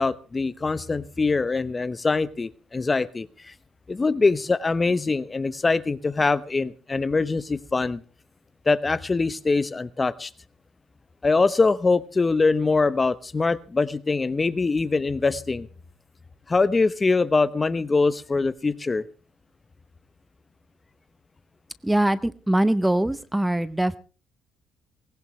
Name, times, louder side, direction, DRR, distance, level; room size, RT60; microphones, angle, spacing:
voice 1, 0.0-3.5 3.9-8.0 8.7-10.3 11.2-15.7 16.5-19.0, left 3 dB, 25° left, 16 dB, 0.9 m, -23 dB
voice 2, 21.8-24.0, right 1 dB, 10° right, 16 dB, 0.8 m, -22 dB
19.5 x 17.5 x 3.2 m, 0.36 s
cardioid pair, 95°, 0 cm